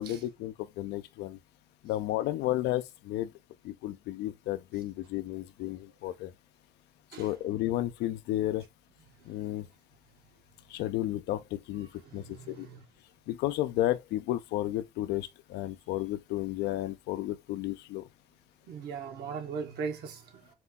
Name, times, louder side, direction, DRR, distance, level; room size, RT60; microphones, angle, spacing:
voice 1, 0.0-1.4 1.8-3.3 3.6-6.3 7.2-8.7 9.3-9.6 10.7-12.7 13.3-18.0, left 14 dB, 80° left, 0.5 m, -32 dB
voice 2, 12.0-12.8 18.7-20.5, right 6 dB, 70° right, 1.3 m, -39 dB
4.4 x 2.3 x 3.9 m
cardioid pair, 110°, 17 cm